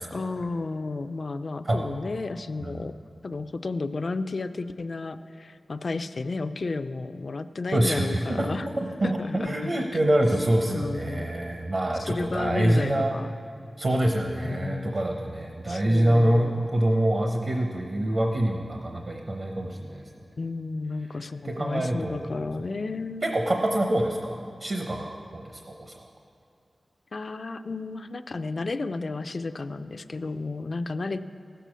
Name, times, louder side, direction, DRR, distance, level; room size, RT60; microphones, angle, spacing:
voice 1, 0.1-2.9 3.2-8.7 9.0-9.7 10.7-11.3 12.0-13.3 14.4-15.0 15.7-16.5 20.4-23.4 27.1-31.2, left 3 dB, 55° left, 12 dB, 0.4 m, -32 dB
voice 2, 7.7-8.5 8.8-13.1 13.8-20.0 21.4-22.2 23.2-26.0, right 1 dB, 50° right, 3 dB, 0.8 m, -25 dB
15.0 x 6.8 x 6.2 m, 2.5 s
wide cardioid pair, 115°, 0 cm